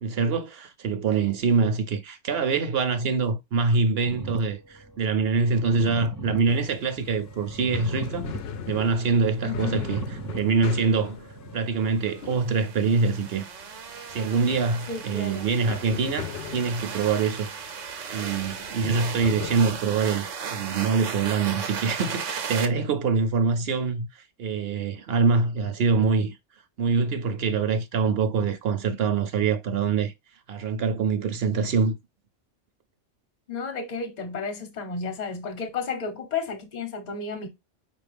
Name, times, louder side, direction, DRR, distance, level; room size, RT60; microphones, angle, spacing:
voice 1, 0.0-8.3 8.7-10.0 10.4-11.3 11.5-13.5 14.1-17.5 18.1-26.4 26.8-30.1 30.5-32.0, right 4 dB, 60° right, 0.8 m, -24 dB
sound 1, 4.1-12.0, right 3 dB, 25° right, 0.4 m, -39 dB
sound 2, 6.5-20.3, left 7 dB, 65° left, 0.7 m, -40 dB
voice 2, 9.4-9.8 14.9-15.5 33.5-37.5, left 5 dB, 40° left, 0.9 m, -32 dB
sound 3, 12.2-22.7, right 6 dB, 85° right, 1.1 m, -36 dB
5.2 x 2.6 x 3.3 m
omnidirectional pair, 1.2 m